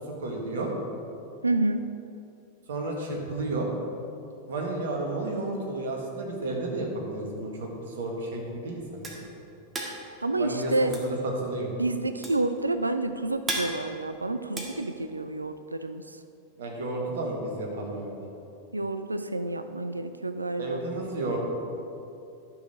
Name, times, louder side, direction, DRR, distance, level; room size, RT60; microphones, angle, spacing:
voice 1, 0.2-0.7 2.7-3.7 4.5-9.2 10.3-10.7 11.0-11.7 16.6-18.3 20.6-21.4, right 2 dB, 60° right, 0 dB, 1.8 m, -32 dB
voice 2, 1.4-1.9 10.2-11.0 11.8-16.2 18.7-20.8, right 2 dB, 80° right, 10 dB, 0.4 m, -29 dB
sound 1, 9.0-15.6, right 2 dB, 15° right, 1.6 m, -37 dB
11.0 x 6.5 x 5.0 m, 2.7 s
figure-of-eight pair, 90°, 0 cm